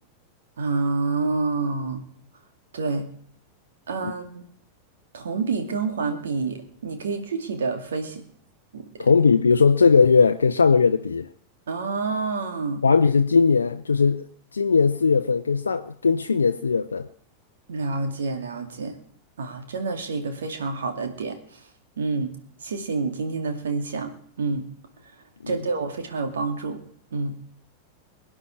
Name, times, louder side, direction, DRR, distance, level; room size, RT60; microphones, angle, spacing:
voice 1, 0.6-2.0 2.7-3.1 3.9-4.4 5.1-8.2 8.7-9.1 11.7-12.8 17.7-19.0 19.4-21.6 22.0-22.3 22.6-24.1 24.4-24.7 25.5-26.8 27.1-27.4, right 4 dB, 65° right, 2.4 m, -28 dB
voice 2, 9.0-11.3 12.8-14.3 14.5-17.1 25.4-25.5, left 5 dB, 75° left, 0.6 m, -19 dB
23.0 x 9.8 x 4.7 m
figure-of-eight pair, 90°, 0 cm